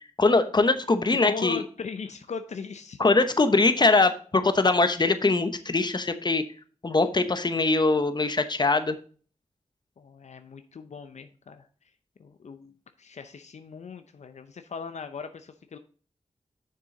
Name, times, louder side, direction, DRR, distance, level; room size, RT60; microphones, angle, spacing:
voice 1, 0.2-1.6 3.0-6.4 6.8-9.0, left 3 dB, 40° left, 9 dB, 0.9 m, -22 dB
voice 2, 1.2-3.0 10.0-11.7 12.2-12.7 13.0-15.8, left 5 dB, 75° left, 9 dB, 0.6 m, -39 dB
6.8 x 6.4 x 3.8 m, 0.41 s
cardioid pair, 50°, 12 cm